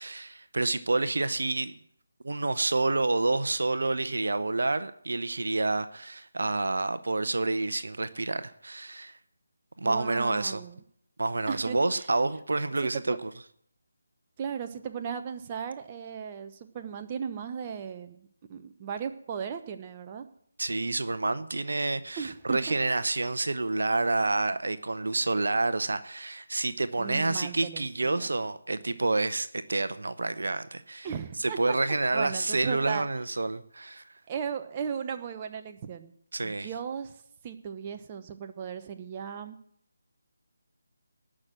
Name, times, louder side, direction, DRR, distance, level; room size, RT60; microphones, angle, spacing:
voice 1, 0.0-1.7 2.2-9.2 9.8-10.6 11.2-13.3 20.6-31.1 31.4-34.1 36.3-36.7, right 2 dB, 65° right, 0.9 m, -28 dB
voice 2, 9.8-10.8 11.5-12.1 12.9-13.2 14.4-20.2 22.2-22.7 27.0-28.3 31.0-31.8 32.1-33.1 34.3-36.1 36.4-37.1 37.4-39.6, right 7 dB, 25° right, 1.0 m, -36 dB
18.5 x 6.3 x 7.6 m
figure-of-eight pair, 155°, 0 cm